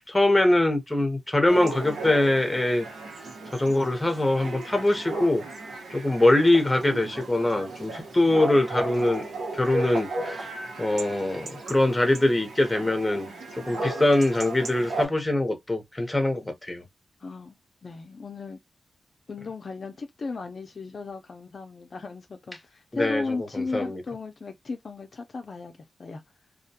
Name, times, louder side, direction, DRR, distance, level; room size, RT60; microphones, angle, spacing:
voice 1, 0.1-2.9 3.5-5.4 5.9-9.3 9.5-10.5 10.8-13.3 13.5-16.8 22.9-23.2 23.5-24.0, left 1 dB, 15° left, 0.7 m, -23 dB
Chatter / Bark / Livestock farm animals working animals, 1.5-15.1, right 2 dB, 85° right, 0.9 m, -35 dB
voice 2, 17.2-17.6 17.8-18.6 19.3-26.2, left 3 dB, 50° left, 0.4 m, -35 dB
2.2 x 2.2 x 2.6 m
wide cardioid pair, 90°, 0 cm